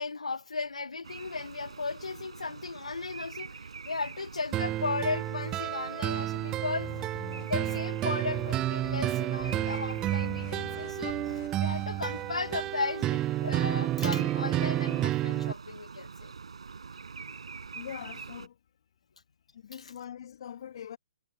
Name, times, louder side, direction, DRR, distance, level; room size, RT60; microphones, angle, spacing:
voice 1, 0.0-3.6 3.8-6.9 7.4-11.2 11.6-16.3 19.7-19.9, left 4 dB, 70° left, 1.3 m, -35 dB
sound 1, 1.0-18.5, right 5 dB, 65° right, 6.8 m, -46 dB
sound 2, 4.5-15.5, right 14 dB, 20° right, 0.6 m, -30 dB
sound 3, 6.8-7.8 8.3-8.6 8.8-9.1 9.4-12.7, left 22 dB, 35° left, 3.2 m, -47 dB
voice 2, 17.7-18.6 19.5-21.0, left 9 dB, 50° left, 2.0 m, -42 dB
figure-of-eight pair, 125°, 4 cm